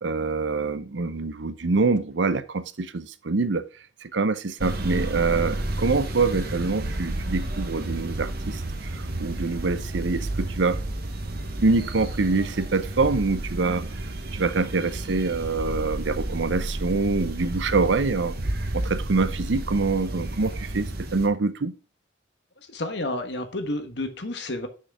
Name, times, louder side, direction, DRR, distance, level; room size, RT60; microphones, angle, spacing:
voice 1, 0.0-3.6 4.1-8.6 8.9-10.8 11.6-13.9 14.3-18.4 18.7-21.7, right 3 dB, 75° right, 0.7 m, -25 dB
sound 1, 4.6-21.3, right 1 dB, 55° right, 1.3 m, -31 dB
voice 2, 22.7-24.7, left 2 dB, 65° left, 1.4 m, -30 dB
6.4 x 6.3 x 4.7 m
head